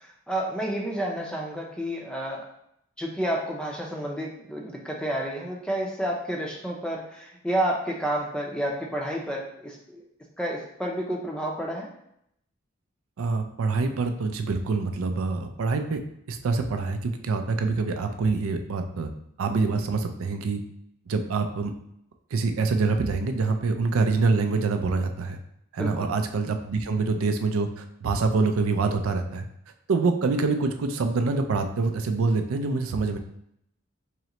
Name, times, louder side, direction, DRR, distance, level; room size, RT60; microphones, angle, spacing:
voice 1, 0.0-2.4 3.0-10.0 10.4-11.9 25.8-26.1, right 1 dB, 5° left, -1 dB, 0.5 m, -30 dB
voice 2, 13.2-16.0 16.3-19.1 19.4-20.6 21.1-21.7 22.3-25.4 25.7-29.4 29.9-33.2, right 4 dB, 85° right, 6 dB, 0.4 m, -25 dB
3.7 x 3.1 x 2.9 m, 0.75 s
head